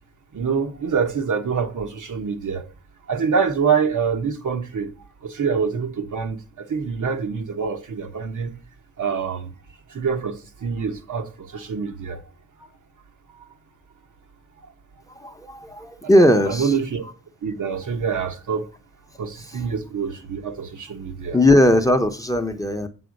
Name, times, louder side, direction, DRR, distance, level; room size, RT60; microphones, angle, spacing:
voice 1, 0.3-2.7 3.1-4.9 5.2-8.5 9.0-9.5 9.9-12.2 13.4-13.5 16.4-17.0 17.4-18.7 19.2-21.4, right 6 dB, 80° right, 1.2 m, -25 dB
voice 2, 15.1-16.7 19.5-19.6 21.3-22.9, left 1 dB, 10° left, 0.7 m, -18 dB
7.8 x 3.7 x 6.4 m
wide cardioid pair, 130°, 30 cm